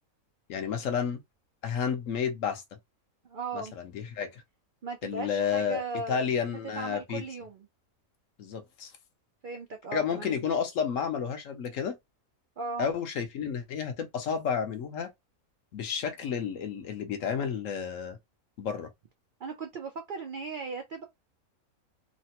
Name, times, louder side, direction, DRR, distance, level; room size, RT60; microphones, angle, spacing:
voice 1, 0.5-1.2 1.6-2.6 3.5-4.4 5.0-5.8 6.1-7.2 8.4-8.9 9.9-12.0 12.8-15.1 15.7-18.2 18.6-18.9, left 7 dB, 70° left, 1.0 m, -31 dB
voice 2, 3.2-3.7 4.8-7.7 9.4-10.4 12.6-12.9 19.4-21.0, right 4 dB, 85° right, 0.4 m, -37 dB
3.2 x 2.1 x 2.8 m
omnidirectional pair, 1.5 m